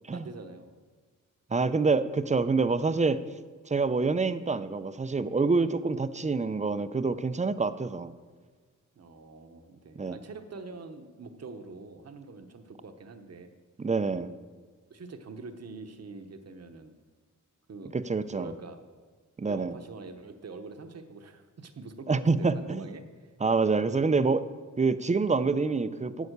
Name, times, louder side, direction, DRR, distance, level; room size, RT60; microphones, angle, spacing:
voice 1, 0.1-0.8 9.0-13.5 14.9-16.9 17.7-18.0 18.3-18.8 19.5-23.3, right 3 dB, 50° right, 7 dB, 1.0 m, -44 dB
voice 2, 1.5-3.2 3.7-8.1 10.0-10.2 13.8-14.3 17.9-18.5 19.4-19.7 22.1-22.8 23.4-24.5 24.8-26.3, right 4 dB, 25° right, 13 dB, 0.4 m, -26 dB
11.0 x 8.3 x 6.6 m, 1.5 s
wide cardioid pair, 150°, 32 cm